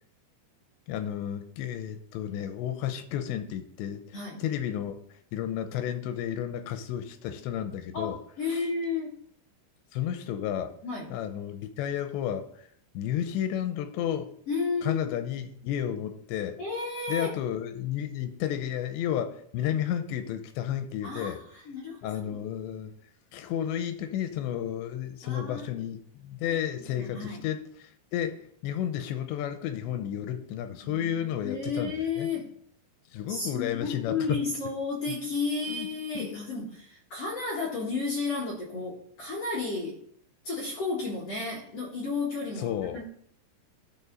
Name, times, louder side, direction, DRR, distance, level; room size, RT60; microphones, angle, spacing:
voice 1, 0.9-8.2 8.5-8.6 9.9-10.7 11.1-12.7 12.9-14.3 14.8-16.6 17.1-21.4 22.0-22.9 23.3-32.3 33.1-34.4 35.7-35.9 36.1-36.3 42.6-43.0, left 10 dB, 85° left, 8 dB, 3.0 m, -32 dB
voice 2, 7.9-9.1 10.8-11.2 14.5-15.1 16.6-17.3 21.0-22.4 25.2-25.7 26.5-26.6 27.0-27.4 30.8-32.5 33.3-40.0 40.4-43.0, left 4 dB, 50° left, -4 dB, 2.0 m, -33 dB
12.5 x 4.7 x 5.3 m, 0.65 s
omnidirectional pair, 5.2 m